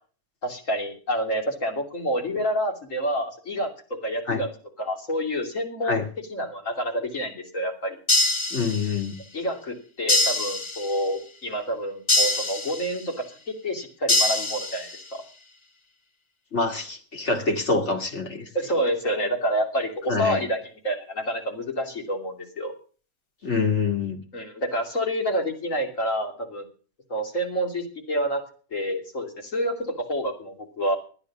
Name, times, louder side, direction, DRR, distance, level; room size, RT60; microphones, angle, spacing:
voice 1, 0.4-3.7 4.0-4.5 4.8-6.0 6.3-8.0 9.3-13.1 13.5-15.2 18.5-22.7 24.3-26.7 27.1-28.4 28.7-31.0, equal, 85° left, 3 dB, 3.2 m, -28 dB
sound 1, 8.1-9.1 10.1-11.1 12.1-13.1 14.1-15.1, left 2 dB, 30° left, 0.7 m, -24 dB
voice 2, 8.5-9.1 16.5-18.5 20.1-20.4 23.4-24.2, left 4 dB, 65° left, 4 dB, 2.6 m, -25 dB
13.5 x 9.7 x 7.1 m, 0.40 s
omnidirectional pair, 1.3 m